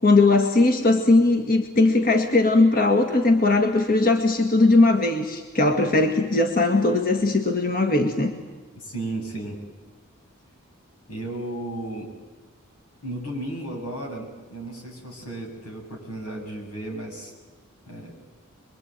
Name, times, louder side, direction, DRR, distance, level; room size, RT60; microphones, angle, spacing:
voice 1, 0.0-8.3, left 2 dB, 40° left, 5 dB, 1.9 m, -19 dB
voice 2, 8.7-9.6 11.1-12.1 13.0-17.3 17.9-18.1, right 1 dB, 90° left, 2 dB, 7.7 m, -34 dB
26.5 x 22.5 x 9.1 m, 1.3 s
head